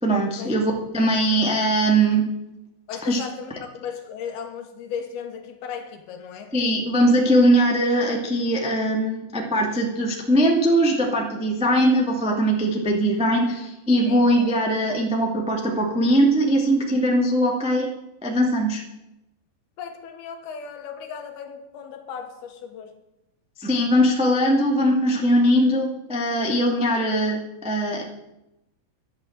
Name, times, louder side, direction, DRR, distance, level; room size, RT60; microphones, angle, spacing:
voice 1, 0.0-2.2 3.0-3.2 6.5-17.9 18.2-18.8 23.6-28.0, right 1 dB, 5° right, 0.6 m, -21 dB
voice 2, 2.9-6.5 14.1-14.3 19.8-23.0, left 7 dB, 70° left, 3.0 m, -36 dB
12.0 x 10.0 x 8.0 m
omnidirectional pair, 5.0 m